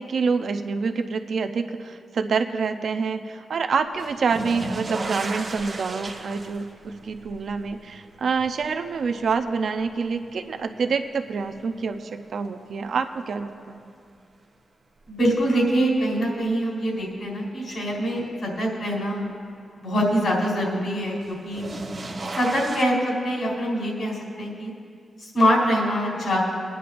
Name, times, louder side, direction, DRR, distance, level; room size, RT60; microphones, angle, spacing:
voice 1, 0.0-13.8, right 5 dB, 60° right, 7 dB, 0.5 m, -27 dB
sound 1, 4.0-11.0 11.4-12.1 13.7-13.8 15.4-15.5 21.2-22.8, right 2 dB, 30° right, 1.0 m, -35 dB
voice 2, 15.1-19.3 19.8-21.7 22.3-24.7 25.2-26.4, equal, 55° left, -4 dB, 3.7 m, -24 dB
24.0 x 10.0 x 2.6 m, 2.3 s
wide cardioid pair, 170°, 0 cm